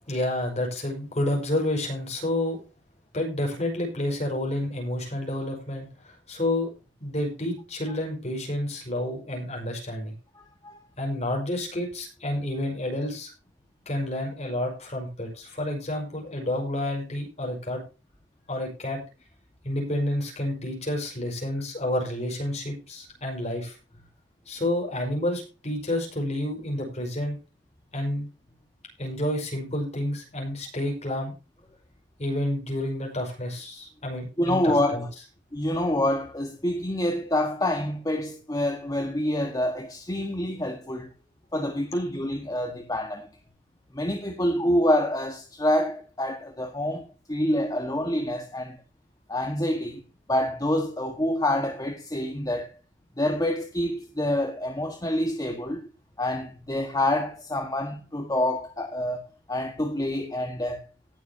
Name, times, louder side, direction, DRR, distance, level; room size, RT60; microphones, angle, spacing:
voice 1, 0.1-2.6 3.1-6.7 7.0-10.1 11.0-13.3 13.9-17.8 18.5-19.0 19.6-23.8 24.5-27.4 27.9-28.3 29.0-31.3 32.2-35.0, left 1 dB, 35° left, 5.3 m, -29 dB
voice 2, 34.4-35.1 35.5-41.1 41.5-43.3 43.9-48.8 49.3-50.0 50.3-52.7 53.2-55.9 56.2-59.2 59.5-60.8, left 1 dB, 20° left, 1.5 m, -27 dB
18.5 x 7.3 x 2.8 m
head